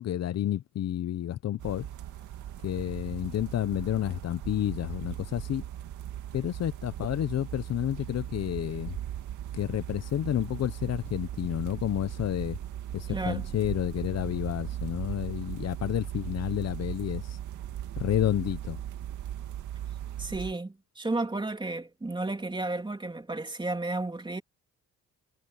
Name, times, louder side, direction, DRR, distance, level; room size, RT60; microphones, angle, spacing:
voice 1, 0.0-1.9 2.6-5.6 6.3-9.0 9.5-12.6 12.9-17.4 18.0-18.8, left 12 dB, 60° left, 0.8 m, -30 dB
sound 1, 1.6-20.5, right 11 dB, 75° right, 2.1 m, -38 dB
voice 2, 13.1-13.4 20.2-24.4, right 2 dB, 15° right, 3.1 m, -32 dB
cardioid pair, 90°, 30 cm